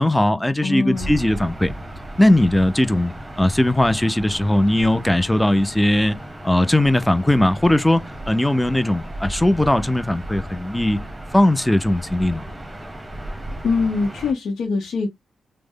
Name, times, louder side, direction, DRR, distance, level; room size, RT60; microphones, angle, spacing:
voice 1, 0.0-1.7 2.2-3.1 3.4-6.2 6.4-11.0 11.3-12.4, left 1 dB, 10° left, 0.6 m, -19 dB
voice 2, 0.6-1.2 13.6-15.1, left 4 dB, 80° left, 0.8 m, -23 dB
Gull seagull / Ocean, 0.9-14.3, right 1 dB, 20° right, 1.0 m, -35 dB
3.1 x 2.1 x 3.6 m
cardioid pair, 65°, 0 cm